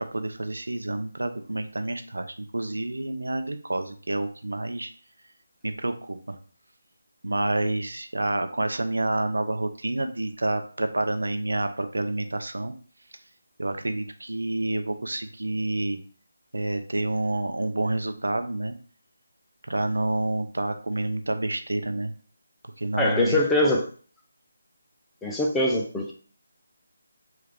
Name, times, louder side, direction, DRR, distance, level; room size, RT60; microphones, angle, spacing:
voice 1, 0.0-4.9 5.6-6.4 7.2-12.7 13.6-16.0 16.5-18.8 19.7-22.1 22.8-23.4, right 2 dB, 80° right, 7 dB, 0.5 m, -28 dB
voice 2, 23.0-23.9 25.2-26.1, left 1 dB, 5° left, -2 dB, 0.5 m, -23 dB
3.3 x 2.3 x 3.2 m, 0.42 s
figure-of-eight pair, 160°, 0 cm